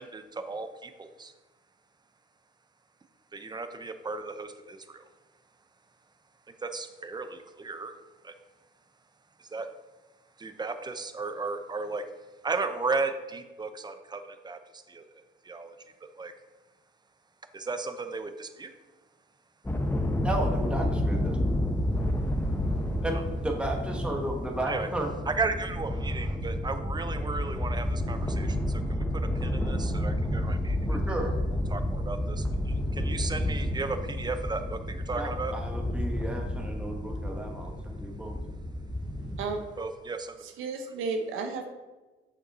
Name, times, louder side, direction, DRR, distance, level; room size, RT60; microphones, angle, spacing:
voice 1, 0.0-1.3 3.3-5.1 6.6-7.9 8.2-8.3 9.4-9.7 10.4-12.1 12.4-15.0 15.4-15.7 16.2-16.3 17.5-18.7 23.1-23.2 24.7-24.9 25.3-30.8 31.1-31.2 31.7-35.5 39.8-40.4, right 3 dB, 20° right, 9 dB, 0.7 m, -35 dB
sound 1, 19.6-39.5, left 1 dB, 10° left, 0.8 m, -30 dB
voice 2, 20.2-21.4 23.0-25.1 30.9-31.3 35.1-38.4, right 1 dB, 5° right, 1 dB, 1.2 m, -33 dB
voice 3, 40.4-41.7, right 4 dB, 85° right, 5 dB, 0.8 m, -33 dB
6.6 x 5.3 x 4.2 m, 1.2 s
cardioid pair, 90°, 20 cm